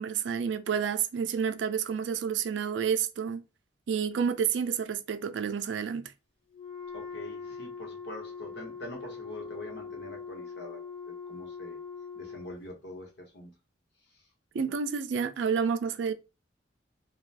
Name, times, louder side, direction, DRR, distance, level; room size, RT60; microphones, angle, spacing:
voice 1, 0.0-3.4 3.9-6.0 14.5-16.1, right 7 dB, 70° right, 0.4 m, -29 dB
Wind instrument woodwind instrument, 6.5-12.6, left 5 dB, 25° left, 0.6 m, -42 dB
voice 2, 6.9-11.8 12.1-13.5, left 1 dB, 60° left, 1.0 m, -44 dB
2.5 x 2.3 x 3.2 m
head